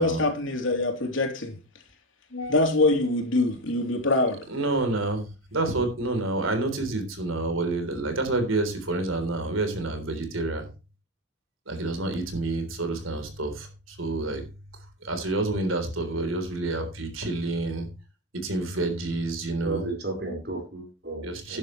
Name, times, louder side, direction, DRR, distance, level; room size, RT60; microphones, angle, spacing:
voice 1, 0.0-1.6 2.3-4.4, left 2 dB, 75° left, 3.4 m, -24 dB
voice 2, 4.5-10.7 11.7-14.4 15.0-17.9 18.4-19.9 21.2-21.6, right 2 dB, 90° right, 3.7 m, -28 dB
voice 3, 19.6-21.6, right 2 dB, 55° right, 5.0 m, -33 dB
12.5 x 10.5 x 3.2 m
head